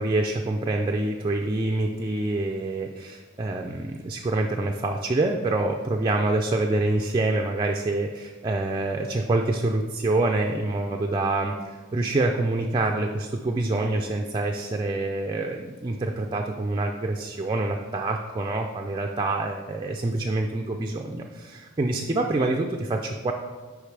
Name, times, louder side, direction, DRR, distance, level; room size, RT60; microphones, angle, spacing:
voice 1, 0.0-23.3, right 2 dB, 20° right, 2 dB, 0.3 m, -26 dB
8.3 x 5.1 x 3.3 m, 1.4 s
head